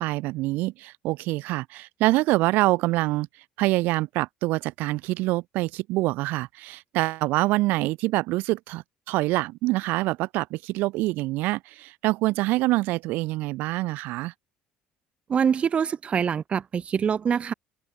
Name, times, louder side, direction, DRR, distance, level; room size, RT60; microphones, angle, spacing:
voice 1, 0.0-3.3 3.6-14.3, right 20 dB, 80° right, 1.8 m, -25 dB
voice 2, 15.3-17.5, right 7 dB, 40° right, 1.0 m, -24 dB
open air
supercardioid pair, 90°, 3 cm